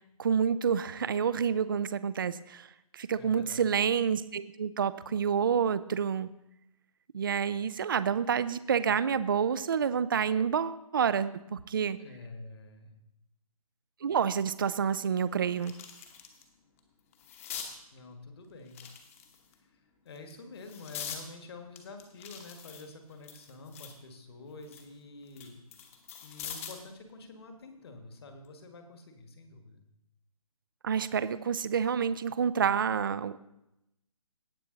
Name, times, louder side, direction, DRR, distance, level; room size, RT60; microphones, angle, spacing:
voice 1, 0.2-2.7 2.9-6.3 7.1-12.0 14.0-15.7 30.8-33.5, right 7 dB, 35° right, 16 dB, 0.4 m, -28 dB
voice 2, 3.1-3.7 12.0-12.9 17.9-18.8 19.6-25.6 26.2-29.8, left 3 dB, 45° left, 6 dB, 1.6 m, -48 dB
sound 1, 14.4-14.5 15.0-16.4 16.8-17.7 18.7-19.5 20.1-21.2 21.8-24.0 24.4-26.9 28.2-28.5, left 8 dB, 25° left, 1.0 m, -44 dB
17.5 x 6.0 x 3.9 m, 0.85 s
hypercardioid pair, 155°, 19 cm